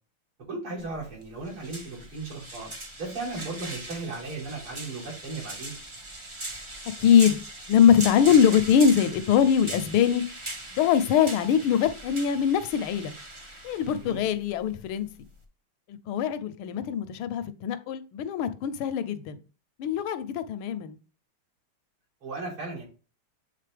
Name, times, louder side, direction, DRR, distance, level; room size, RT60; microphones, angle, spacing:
voice 1, 0.5-2.7 3.0-5.8 14.0-14.2 22.2-22.9, right 3 dB, 75° right, -6 dB, 4.5 m, -36 dB
sound 1, 0.8-15.4, right 1 dB, 40° right, 0.4 m, -40 dB
voice 2, 7.0-7.4 7.7-10.2 10.7-13.1 13.6-15.1 15.9-19.4 19.8-21.0, left 8 dB, 80° left, 10 dB, 1.5 m, -22 dB
7.5 x 3.9 x 3.4 m, 0.34 s
omnidirectional pair, 2.3 m